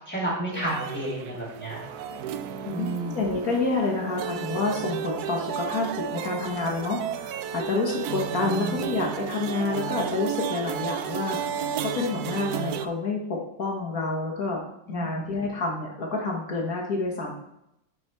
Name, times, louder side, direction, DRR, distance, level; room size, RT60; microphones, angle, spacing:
voice 1, 0.1-1.8 2.7-3.2 8.4-8.8 9.7-9.9 14.9-15.3, right 1 dB, 5° left, -7 dB, 3.2 m, -31 dB
sound 1, 0.5-12.9, right 8 dB, 70° right, 0.9 m, -33 dB
voice 2, 2.7-11.4 11.8-17.3, left 3 dB, 55° left, -1 dB, 1.7 m, -28 dB
9.4 x 4.9 x 4.6 m, 0.82 s
omnidirectional pair, 2.0 m